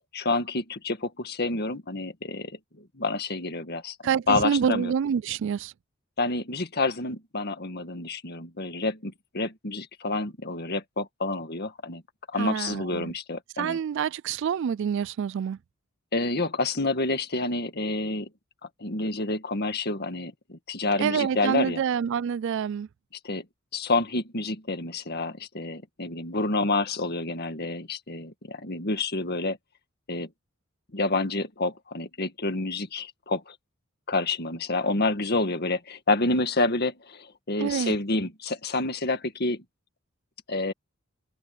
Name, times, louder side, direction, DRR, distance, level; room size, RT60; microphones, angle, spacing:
voice 1, 0.1-4.9 6.2-12.0 12.3-13.8 16.1-18.3 18.8-21.8 23.2-23.5 23.7-29.6 30.1-30.3 30.9-33.6 34.1-39.6 40.5-40.7, left 2 dB, 50° left, 1.9 m, -28 dB
voice 2, 4.0-5.7 12.4-13.1 13.6-15.6 21.0-22.9 37.6-38.0, right 7 dB, 60° right, 0.3 m, -27 dB
head